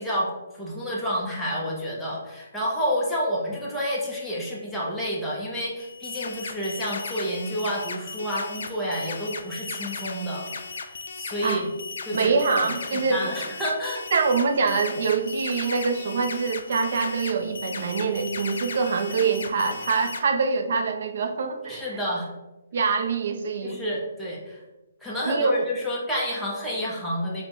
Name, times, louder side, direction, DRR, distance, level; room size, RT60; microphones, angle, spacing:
voice 1, 0.0-10.5 10.8-11.7 12.1-12.4 12.9-14.0 21.7-22.3 23.6-24.6 25.0-27.4, equal, ahead, -7 dB, 0.6 m, -29 dB
sound 1, 5.8-20.2, left 4 dB, 65° left, 0.4 m, -36 dB
voice 2, 12.1-13.3 14.1-22.0 22.7-23.8 25.3-25.6, right 4 dB, 55° right, 6 dB, 0.4 m, -25 dB
5.2 x 2.1 x 3.0 m, 1.1 s
hypercardioid pair, 170°, 0 cm